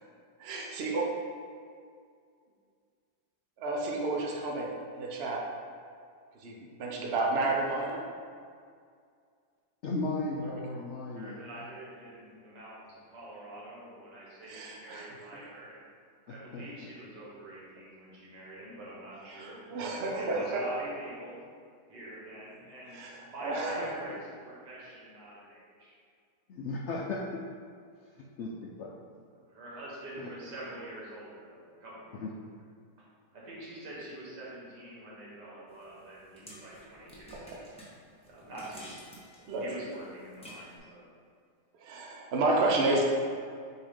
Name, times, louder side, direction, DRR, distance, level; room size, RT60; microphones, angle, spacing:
voice 1, 0.4-1.1 3.6-5.4 6.3-8.0 14.5-15.1 19.3-20.6 22.9-24.1 37.3-37.6 39.5-39.6 41.8-43.1, right 2 dB, 50° right, -1 dB, 0.9 m, -31 dB
voice 2, 9.8-11.4 16.5-16.6 26.5-27.4 28.4-28.5 28.8-28.9 32.1-32.3, left 2 dB, 80° left, -2 dB, 0.6 m, -35 dB
voice 3, 11.1-15.8 16.3-19.6 20.1-21.4 21.9-26.0 29.3-32.3 33.0-33.1 33.3-37.4 38.2-38.9 39.6-41.1, right 1 dB, 85° right, -6 dB, 2.1 m, -45 dB
sound 1, 35.7-40.8, equal, 5° left, 0.7 m, -51 dB
6.8 x 2.8 x 5.0 m, 2.2 s
omnidirectional pair, 1.8 m